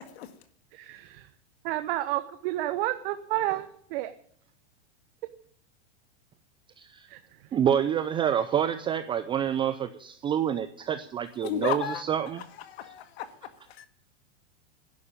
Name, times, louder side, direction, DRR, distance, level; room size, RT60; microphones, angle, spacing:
voice 1, 0.7-1.3 1.6-4.1 7.1-7.2, right 15 dB, 50° right, 1.1 m, -30 dB
voice 2, 6.8-7.1 7.5-12.4, right 9 dB, 15° right, 0.5 m, -27 dB
voice 3, 11.4-12.0 12.7-13.3 13.8-13.9, left 10 dB, 60° left, 2.0 m, -32 dB
11.0 x 11.0 x 8.8 m
supercardioid pair, 140°, 35 cm